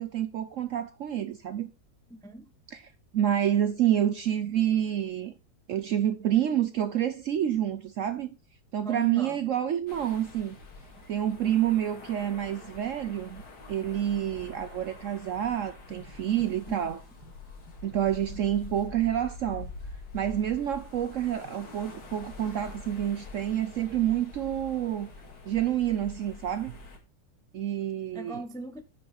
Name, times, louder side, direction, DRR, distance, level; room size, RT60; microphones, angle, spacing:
voice 1, 0.0-1.7 2.7-5.3 5.7-8.3 8.7-10.6 11.1-13.4 13.7-17.0 17.8-19.7 20.1-25.1 25.5-26.7 27.5-28.4, right 11 dB, 65° right, 0.8 m, -28 dB
voice 2, 2.1-2.5 8.8-9.4 16.7-16.9 28.1-28.8, right 1 dB, 5° left, 0.4 m, -38 dB
sound 1, 9.9-27.0, left 3 dB, 65° left, 2.7 m, -45 dB
10.5 x 5.5 x 4.9 m
omnidirectional pair, 1.9 m